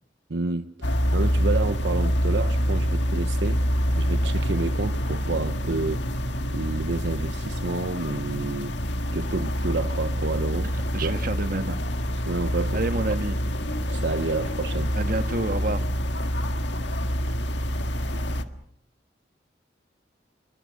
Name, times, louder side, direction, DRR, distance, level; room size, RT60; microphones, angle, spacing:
voice 1, 0.3-3.7 3.9-6.2 6.5-8.8 9.1-10.7 11.0-11.2 12.3-12.8 13.1-13.2 13.9-15.0, right 3 dB, 75° right, 0.9 m, -30 dB
sound 1, 0.8-18.4, equal, 80° left, 1.7 m, -26 dB
voice 2, 10.9-11.8 12.7-13.4 14.9-15.9, right 2 dB, 50° right, 1.6 m, -28 dB
28.5 x 23.5 x 6.5 m
head